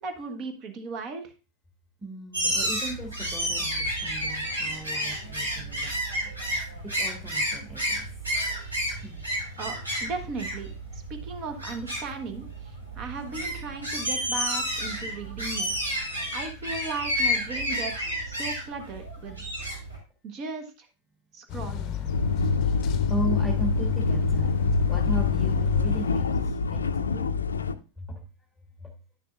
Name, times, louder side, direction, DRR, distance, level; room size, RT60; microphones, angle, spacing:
voice 1, 0.0-1.3 9.6-15.8 16.3-19.4 20.2-20.9 21.3-21.9, right 4 dB, 40° right, 7 dB, 1.3 m, -37 dB
voice 2, 2.0-5.9 7.0-8.1 9.0-9.2 23.1-24.5 24.9-27.2 28.0-28.2, right 2 dB, ahead, 0 dB, 1.5 m, -37 dB
sound 1, 2.3-20.0, equal, 85° right, 2.7 m, -31 dB
sound 2, 21.5-26.5, left 8 dB, 40° left, 0.6 m, -34 dB
sound 3, 22.1-27.7, left 4 dB, 80° left, 0.4 m, -25 dB
10.0 x 6.6 x 2.5 m, 0.31 s
figure-of-eight pair, 90°, 0 cm